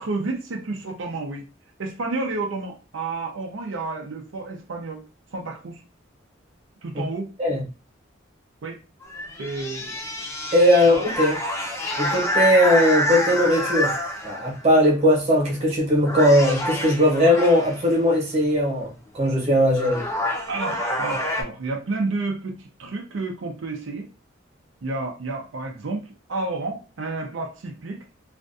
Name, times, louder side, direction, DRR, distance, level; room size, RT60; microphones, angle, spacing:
voice 1, 0.0-1.4 1.8-5.0 5.3-5.8 6.8-7.3 8.6-8.8 9.4-10.0 20.5-24.1 24.8-28.0, right 3 dB, 90° right, 2 dB, 0.5 m, -30 dB
sound 1, 9.0-14.6 15.5-15.7 16.0-17.9 19.3-19.4 19.7-21.4, left 1 dB, 15° left, 0.5 m, -27 dB
voice 2, 10.5-11.4 12.0-13.9 14.2-20.1, left 1 dB, 35° right, -1 dB, 0.9 m, -19 dB
2.5 x 2.2 x 2.5 m, 0.32 s
head